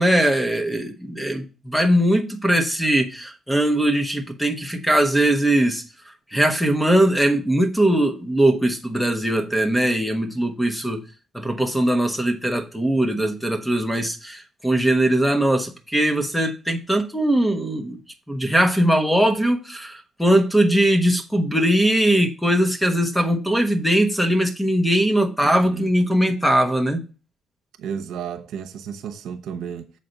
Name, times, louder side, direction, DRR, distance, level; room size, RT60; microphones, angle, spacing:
voice 1, 0.0-5.8 6.3-11.0 11.3-18.0 18.3-27.0, right 1 dB, 5° left, 1.1 m, -20 dB
voice 2, 25.4-25.9 27.8-29.9, right 7 dB, 80° right, 0.9 m, -33 dB
7.5 x 4.3 x 5.3 m
cardioid pair, 90°, 0 cm